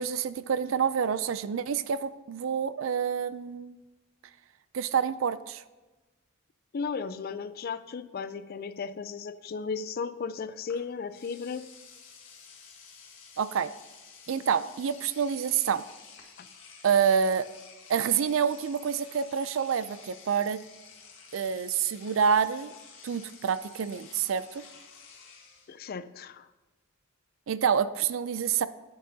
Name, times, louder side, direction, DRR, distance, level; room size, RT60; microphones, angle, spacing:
voice 1, 0.0-3.8 4.7-5.6 13.4-13.7 14.3-15.8 16.8-17.5 17.9-20.6 21.3-22.7 23.0-24.6 27.5-28.7, right 7 dB, 70° right, 15 dB, 0.4 m, -27 dB
voice 2, 6.7-11.7 16.4-16.5 25.7-26.5, left 5 dB, 45° left, 13 dB, 0.4 m, -35 dB
Engine / Domestic sounds home sounds, 10.7-10.8 11.1-25.8, left 6 dB, 70° left, 1.6 m, -51 dB
8.8 x 8.6 x 2.7 m, 1.2 s
head